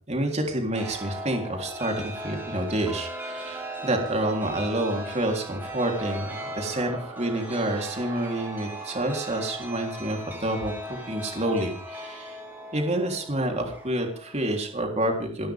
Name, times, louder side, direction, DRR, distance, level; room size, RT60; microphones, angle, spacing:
voice 1, 0.1-12.4 12.7-15.5, right 1 dB, 30° right, 2 dB, 3.5 m, -28 dB
Chime, 0.7-14.9, right 1 dB, 10° right, 5.3 m, -38 dB
28.5 x 12.5 x 3.6 m, 0.43 s
head